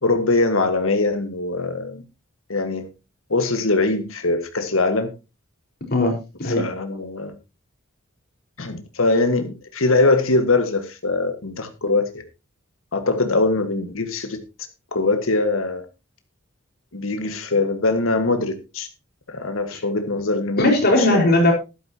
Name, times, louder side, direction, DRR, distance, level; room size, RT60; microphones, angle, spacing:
voice 1, 0.0-2.0 2.5-2.9 3.3-5.1 6.5-7.3 8.6-12.2 12.9-14.4 14.9-15.8 16.9-18.9 19.3-20.6 21.0-21.4, left 3 dB, 90° left, 1.7 m, -22 dB
voice 2, 20.6-21.5, left 1 dB, 50° left, 4.8 m, -17 dB
13.5 x 12.0 x 2.9 m
head